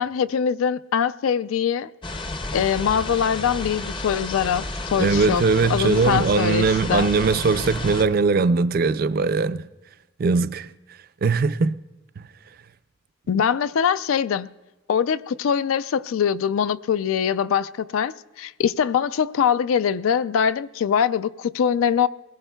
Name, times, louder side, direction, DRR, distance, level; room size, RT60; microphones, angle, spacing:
voice 1, 0.0-1.9 2.5-5.4 5.7-7.1 13.3-14.5 14.9-22.1, left 7 dB, 90° left, 0.4 m, -23 dB
sound 1, 2.0-8.0, left 2 dB, 25° left, 0.5 m, -31 dB
voice 2, 5.0-9.6 10.2-10.7 11.2-11.8, right 4 dB, 45° right, 0.3 m, -20 dB
21.5 x 17.5 x 2.3 m
head